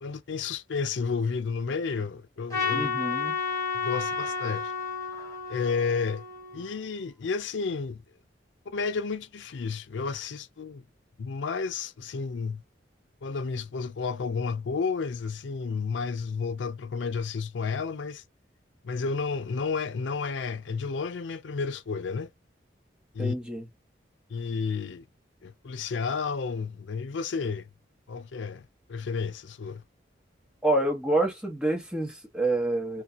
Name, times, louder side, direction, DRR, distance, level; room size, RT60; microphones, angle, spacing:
voice 1, 0.0-2.9 3.7-4.7 5.5-6.2 6.5-8.0 8.7-10.8 11.2-12.6 13.2-18.2 18.8-22.3 23.1-23.4 24.3-25.1 25.4-27.7 28.1-29.8, left 5 dB, 80° left, 0.5 m, -31 dB
Trumpet, 2.5-6.9, left 5 dB, 15° left, 1.2 m, -32 dB
voice 2, 2.7-3.4 23.2-23.7 30.6-33.0, right 2 dB, 5° right, 1.1 m, -27 dB
4.1 x 2.4 x 2.4 m
head